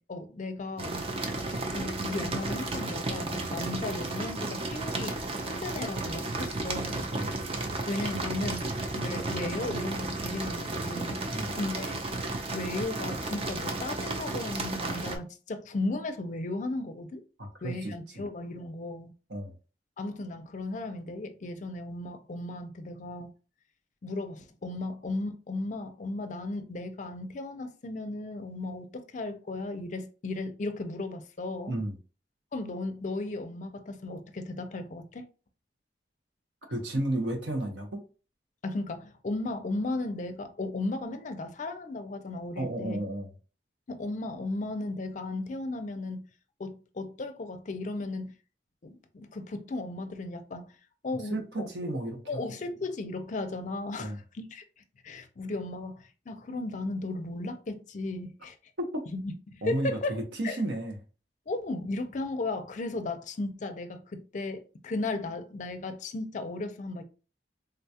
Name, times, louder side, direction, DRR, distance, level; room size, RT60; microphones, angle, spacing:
voice 1, 0.1-1.0 1.7-7.1 7.9-8.7 9.0-11.2 11.5-12.0 12.5-17.2 17.6-19.1 20.0-23.3 24.0-31.8 32.5-35.2 38.6-43.0 43.9-46.2 46.6-48.3 48.8-50.7 51.0-51.7 52.3-54.6 55.0-58.6 59.1-60.2 60.4-60.6 61.5-67.0, left 2 dB, 45° left, 0.5 m, -35 dB
sound 1, 0.8-15.2, right 2 dB, 35° right, 0.5 m, -33 dB
voice 2, 17.4-18.3 19.3-19.5 31.7-32.0 36.7-38.0 42.6-43.3 51.3-52.4 54.0-54.2 58.8-59.0 59.6-61.0, right 1 dB, 80° right, 0.9 m, -33 dB
3.7 x 2.3 x 2.7 m
head